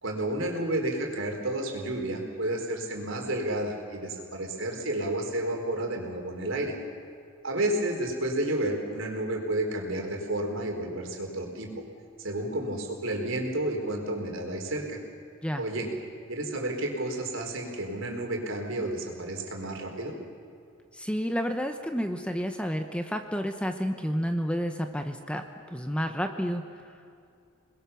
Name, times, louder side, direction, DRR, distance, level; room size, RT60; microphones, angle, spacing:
voice 1, 0.0-6.7 7.4-11.7 12.2-15.0 15.6-15.9 16.3-20.1, right 1 dB, 65° right, 2 dB, 4.3 m, -31 dB
voice 2, 20.9-25.4 25.7-26.6, equal, 5° left, 6 dB, 1.0 m, -30 dB
29.0 x 21.0 x 7.1 m, 2.3 s
head